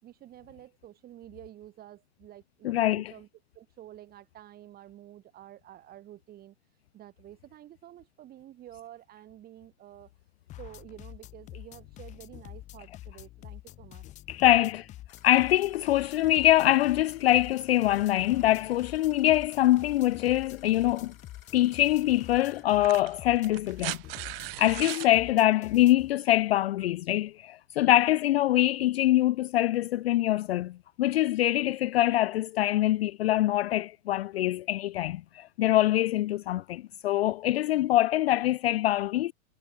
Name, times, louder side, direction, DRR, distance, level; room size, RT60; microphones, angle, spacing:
voice 1, 0.0-3.3 3.5-6.6 6.9-10.1 10.6-14.0, right 12 dB, 20° right, 6.2 m, -49 dB
voice 2, 2.6-3.1 14.3-14.9 15.2-21.1 21.5-24.0 24.6-39.3, left 14 dB, 50° left, 0.5 m, -24 dB
sound 1, 10.5-26.1, left 14 dB, 15° left, 1.0 m, -47 dB
sound 2, 15.1-22.6, left 10 dB, 75° left, 7.6 m, -58 dB
sound 3, 21.5-21.7 22.7-25.1 26.6-26.7, right 20 dB, 45° right, 2.4 m, -38 dB
hypercardioid pair, 155°, 41 cm